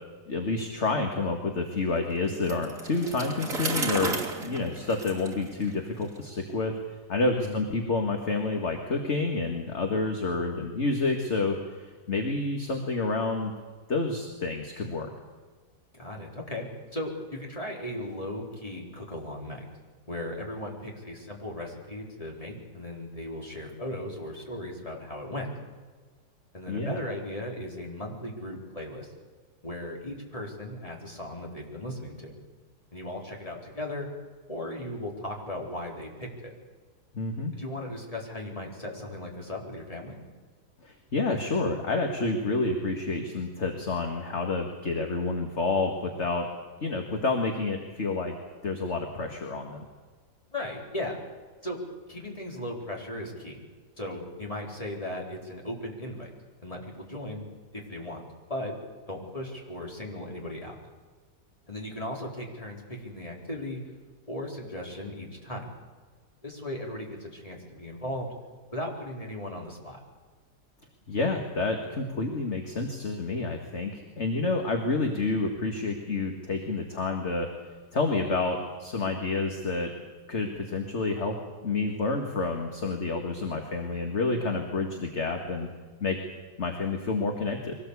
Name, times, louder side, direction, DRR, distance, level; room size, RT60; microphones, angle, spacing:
voice 1, 0.3-6.7 7.1-13.5 13.9-15.1 26.7-27.0 37.1-37.5 40.8-46.5 46.8-48.3 48.6-49.8 71.1-77.5 77.9-79.9 80.3-81.4 81.6-85.7 86.0-86.2 86.6-87.8, left 3 dB, 40° left, 3 dB, 2.2 m, -29 dB
Bicycle, 2.3-6.2, right 3 dB, 50° right, 3.4 m, -34 dB
voice 2, 15.9-19.6 20.1-25.5 26.5-29.1 29.6-32.3 32.9-34.1 34.5-36.5 37.5-40.2 50.5-51.2 51.6-51.8 52.1-53.6 54.0-56.3 56.6-57.4 57.7-58.2 58.5-58.7 59.1-60.7 61.7-63.8 64.3-65.7 66.4-68.3 68.7-70.0, left 1 dB, 20° left, -1 dB, 4.3 m, -37 dB
23.5 x 18.5 x 8.4 m, 1.5 s
omnidirectional pair, 1.8 m